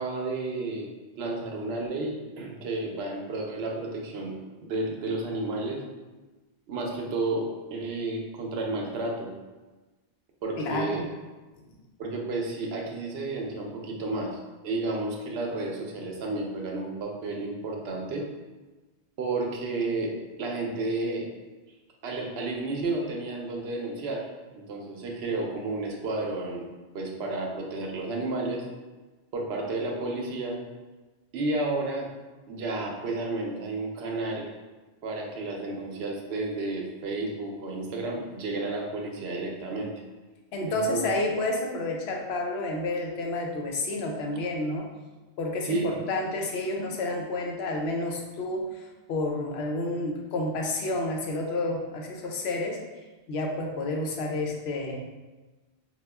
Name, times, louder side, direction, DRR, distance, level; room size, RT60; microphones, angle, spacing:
voice 1, 0.0-5.8 6.7-9.3 10.4-11.0 12.0-18.3 19.2-21.3 22.0-26.7 26.9-28.6 29.3-30.6 31.3-32.1 32.5-34.5 35.0-39.9 40.7-41.0 45.6-46.0, right 2 dB, 85° right, 0 dB, 0.8 m, -32 dB
voice 2, 10.6-11.1 40.5-44.9 45.4-52.8 53.3-55.0, left 2 dB, 85° left, 1 dB, 0.8 m, -30 dB
4.2 x 2.3 x 2.2 m, 1.2 s
omnidirectional pair, 1.0 m